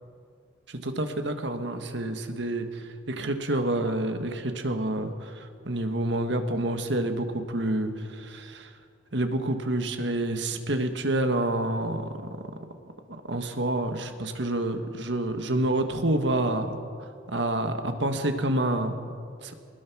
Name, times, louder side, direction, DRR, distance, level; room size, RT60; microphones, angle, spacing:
voice 1, 0.7-8.7 9.1-12.1 13.2-16.7 17.0-18.9 19.4-19.5, right 1 dB, 65° right, 6 dB, 1.7 m, -28 dB
21.0 x 20.0 x 6.2 m, 2.2 s
head